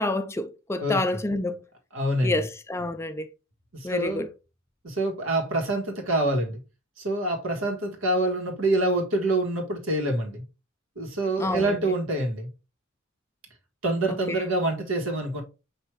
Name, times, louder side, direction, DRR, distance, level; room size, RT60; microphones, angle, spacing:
voice 1, 0.0-1.6 2.2-3.3 3.8-4.3 11.4-11.6 14.3-14.4, left 2 dB, 15° left, 0.4 m, -28 dB
voice 2, 0.8-1.2 1.9-2.4 3.7-4.2 4.8-6.6 7.0-10.4 11.0-12.5 13.8-15.4, right 1 dB, 85° right, 1.4 m, -26 dB
5.9 x 2.7 x 3.1 m
head